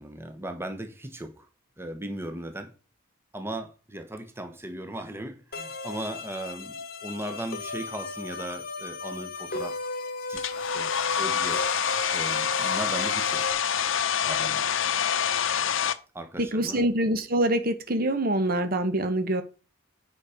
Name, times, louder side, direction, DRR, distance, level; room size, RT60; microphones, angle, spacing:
voice 1, 0.0-1.4 1.8-2.7 3.3-9.8 10.3-10.9 11.2-11.6 12.1-13.4 14.2-14.7 16.1-16.8, right 1 dB, 10° right, 1.1 m, -37 dB
sound 1, 5.5-13.5, left 2 dB, 45° left, 1.1 m, -35 dB
Domestic sounds home sounds, 10.4-15.9, left 8 dB, 70° left, 0.7 m, -26 dB
voice 2, 16.4-19.4, right 1 dB, 45° right, 1.1 m, -25 dB
9.5 x 5.7 x 5.1 m
head